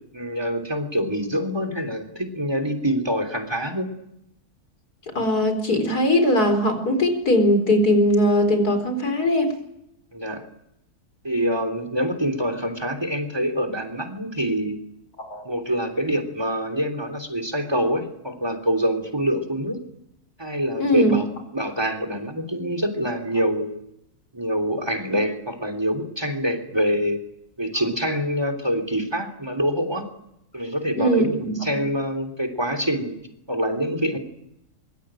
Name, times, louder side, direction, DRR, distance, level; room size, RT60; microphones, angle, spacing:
voice 1, 0.1-3.9 10.1-10.4 11.2-14.8 15.5-19.8 20.4-21.3 21.5-23.8 24.3-27.2 27.6-30.0 30.5-33.2 33.5-34.2, equal, 15° right, 8 dB, 3.4 m, -25 dB
voice 2, 5.1-9.5 15.2-15.4 20.8-21.1 30.9-31.7, left 1 dB, 80° left, 7 dB, 4.9 m, -20 dB
23.5 x 23.5 x 9.1 m, 0.81 s
omnidirectional pair, 1.6 m